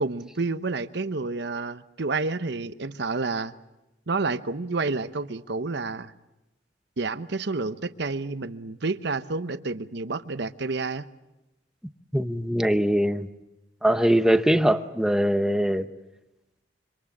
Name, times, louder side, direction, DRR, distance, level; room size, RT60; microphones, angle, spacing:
voice 1, 0.0-3.5 4.1-6.1 7.0-11.0, right 3 dB, 65° right, 0.9 m, -29 dB
voice 2, 12.1-13.3 13.8-15.9, equal, 5° right, 0.9 m, -22 dB
26.5 x 25.5 x 7.4 m
head